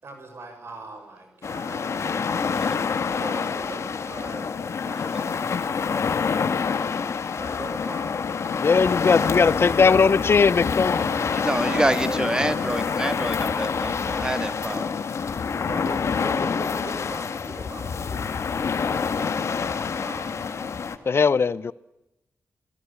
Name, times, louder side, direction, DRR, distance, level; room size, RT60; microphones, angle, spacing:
voice 1, 0.0-2.7 3.1-6.1 7.4-8.2 8.6-10.1 11.5-12.5 15.6-18.4 20.0-20.5, right 3 dB, 60° right, 6.7 m, -41 dB
sound 1, 1.4-21.0, left 5 dB, 70° left, 1.9 m, -27 dB
voice 2, 8.6-11.0 21.1-21.7, left 5 dB, 55° left, 0.9 m, -19 dB
sound 2, 10.5-10.9 11.3-11.6 11.9-12.2 12.7-12.9 13.3-13.6 13.9-14.2 14.6-14.8 15.3-15.4 15.8-16.0 16.4-17.5 17.9-18.1, left 6 dB, 90° left, 3.2 m, -45 dB
voice 3, 11.3-14.9, right 1 dB, 15° right, 2.3 m, -27 dB
27.5 x 19.0 x 8.7 m
wide cardioid pair, 95°, 5 cm